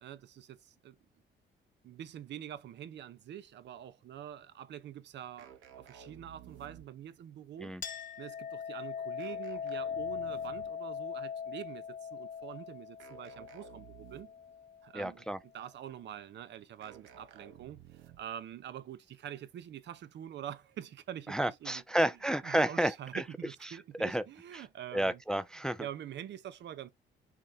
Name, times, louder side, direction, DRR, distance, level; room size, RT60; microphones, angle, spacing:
voice 1, 1.9-5.5 6.1-7.7 8.2-8.3 8.7-11.8 12.1-12.9 13.1-13.8 14.1-14.3 14.9-15.2 15.5-17.8 18.2-19.0 19.2-21.3 21.6-21.8 22.4-25.2 25.8-26.9, right 10 dB, 65° right, 0.6 m, -45 dB
sound 1, 5.4-7.2 9.2-10.9 13.0-14.5 16.8-18.4, right 9 dB, 85° right, 0.9 m, -54 dB
Chink clink, 7.8-14.9, left 7 dB, 45° left, 0.9 m, -40 dB
voice 2, 14.9-15.4 21.3-23.2 24.0-24.2 24.5-24.6 24.9-25.9, right 1 dB, 5° left, 0.3 m, -31 dB
6.0 x 2.1 x 4.0 m
cardioid pair, 90°, 20 cm